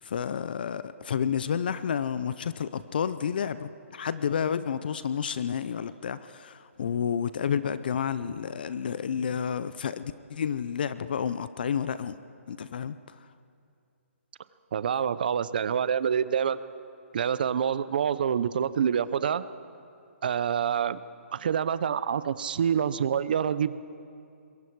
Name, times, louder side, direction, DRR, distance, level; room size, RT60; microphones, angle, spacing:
voice 1, 0.0-12.1 12.5-13.0, left 7 dB, 40° left, 14 dB, 0.5 m, -30 dB
voice 2, 14.7-16.6 17.1-19.4 20.2-21.0 21.3-23.8, right 8 dB, 40° right, 15 dB, 0.6 m, -26 dB
25.5 x 22.0 x 4.7 m, 2.5 s
hypercardioid pair, 175°, 7 cm